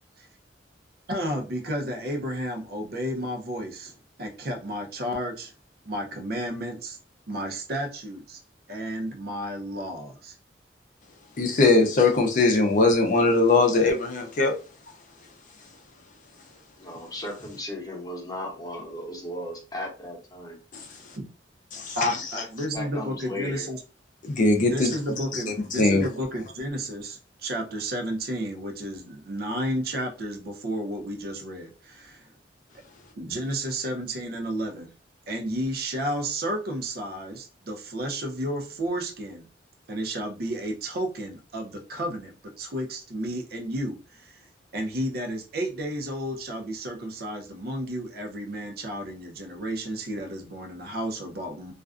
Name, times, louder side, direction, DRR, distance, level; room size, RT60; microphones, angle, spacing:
voice 1, 1.1-5.5 5.9-7.0 7.3-8.4 8.7-10.4 21.9-23.8 24.6-32.3 33.1-34.9 35.3-39.4 39.9-44.4 44.7-51.7, right 1 dB, 55° right, 0.6 m, -32 dB
voice 2, 11.4-14.5 21.7-22.1 24.2-24.9 25.8-26.0, left 3 dB, 45° left, 0.5 m, -20 dB
voice 3, 16.8-20.6 22.3-22.5 22.7-23.7, left 1 dB, 20° left, 0.8 m, -36 dB
2.4 x 2.2 x 2.4 m
head